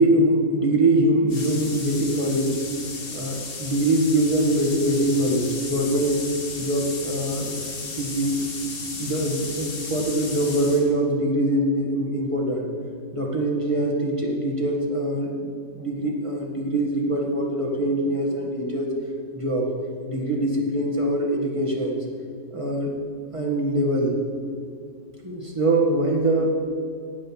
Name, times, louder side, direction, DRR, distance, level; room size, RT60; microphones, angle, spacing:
voice 1, 0.0-2.5 3.1-6.2 6.6-7.6 8.0-8.4 9.0-12.7 13.1-18.9 19.3-19.7 20.1-22.0 22.5-22.9 23.3-24.2 25.2-26.5, right 1 dB, 20° right, -2 dB, 1.7 m, -23 dB
sound 1, 1.3-10.8, left 3 dB, 85° left, 2.6 m, -35 dB
10.0 x 8.1 x 7.4 m, 2.2 s
omnidirectional pair, 1.9 m